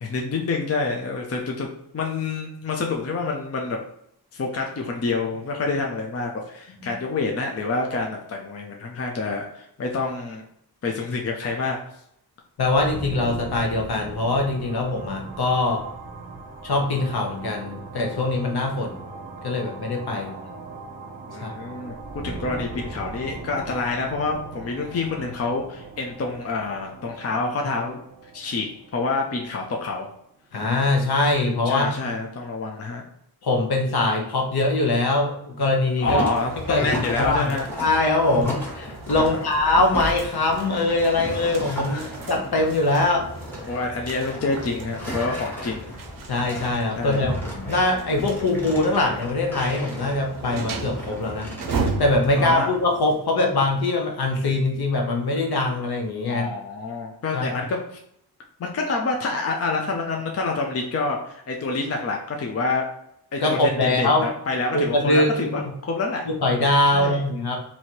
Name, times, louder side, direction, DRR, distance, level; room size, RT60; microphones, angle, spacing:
voice 1, 0.0-1.7 1.9-3.8 4.3-10.4 10.8-11.8 20.1-20.5 21.3-28.0 28.3-30.1 31.7-33.0 36.0-37.7 39.2-39.5 41.9-42.2 43.7-45.9 47.0-47.3 52.3-52.7 56.3-57.8 58.6-62.9 63.3-66.3 66.9-67.2, left 3 dB, 40° left, 1 dB, 0.5 m, -27 dB
voice 2, 12.6-15.8 16.6-19.0 19.4-20.3 21.4-21.5 30.5-31.9 33.4-36.2 36.7-36.9 37.2-43.3 46.3-51.5 52.0-56.5 57.3-57.6 63.4-64.3 64.7-65.7 66.3-67.6, left 2 dB, 70° left, 2 dB, 0.9 m, -22 dB
sound 1, 12.6-30.3, right 3 dB, 25° right, 0.7 m, -39 dB
sound 2, 36.0-52.5, equal, 5° left, 0.9 m, -34 dB
sound 3, 36.3-53.3, right 4 dB, 55° right, 0.6 m, -37 dB
3.1 x 2.8 x 4.3 m, 0.75 s
wide cardioid pair, 180°, 39 cm